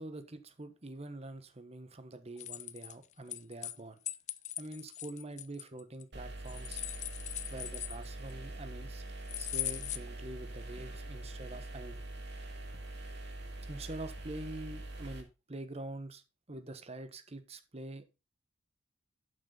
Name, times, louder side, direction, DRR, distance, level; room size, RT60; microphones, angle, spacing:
voice 1, 0.0-4.0 4.6-6.8 7.5-9.0 9.4-12.0 13.7-16.2 16.5-18.0, right 2 dB, 30° right, 1.2 m, -45 dB
sound 1, 2.4-3.8 4.0-6.0 6.4-8.3 9.3-10.0, left 13 dB, 35° left, 0.5 m, -40 dB
sound 2, 6.1-15.2, right 1 dB, 55° right, 2.2 m, -44 dB
11.5 x 6.6 x 3.9 m
head